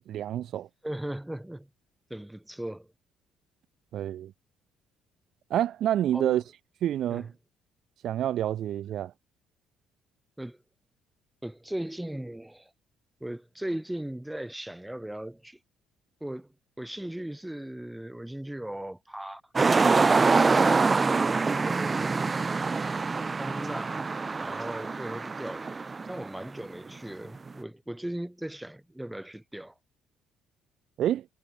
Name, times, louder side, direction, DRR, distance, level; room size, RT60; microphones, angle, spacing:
voice 1, 0.1-0.7 3.9-4.3 5.5-6.4 6.8-7.3 8.0-9.1 31.0-31.2, right 11 dB, 65° right, 3.2 m, -28 dB
voice 2, 0.8-1.7 2.1-2.9 6.1-6.4 7.1-7.3 10.4-10.6 11.4-12.7 13.2-15.6 16.2-19.4 20.1-22.3 23.4-24.0 24.4-29.7, right 1 dB, 5° right, 8.0 m, -38 dB
sound 1, 19.6-26.6 27.3-27.5, right 4 dB, 30° right, 0.8 m, -25 dB
supercardioid pair, 75°, 0 cm